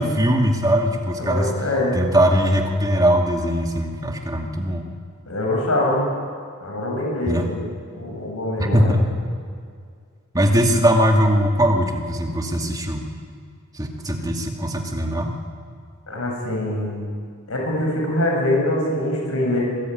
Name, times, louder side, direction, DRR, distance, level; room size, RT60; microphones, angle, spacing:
voice 1, 0.0-1.5 1.9-4.8 7.3-7.5 8.6-9.1 10.3-13.1 13.7-15.4, equal, 15° right, 2 dB, 2.5 m, -20 dB
voice 2, 1.2-2.0 5.3-6.1 6.6-7.6 7.9-8.9 16.1-17.1 17.5-19.6, left 1 dB, 70° left, -1 dB, 7.4 m, -23 dB
26.0 x 20.0 x 9.4 m, 2.1 s
head